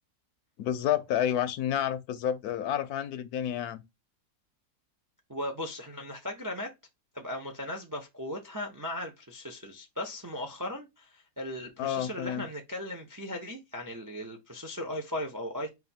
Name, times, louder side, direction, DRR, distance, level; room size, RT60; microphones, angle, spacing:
voice 1, 0.6-3.8 11.8-12.4, left 10 dB, 75° left, 1.0 m, -30 dB
voice 2, 5.3-6.7 7.1-15.7, left 1 dB, 30° right, 0.3 m, -37 dB
4.2 x 2.6 x 4.2 m
omnidirectional pair, 1.7 m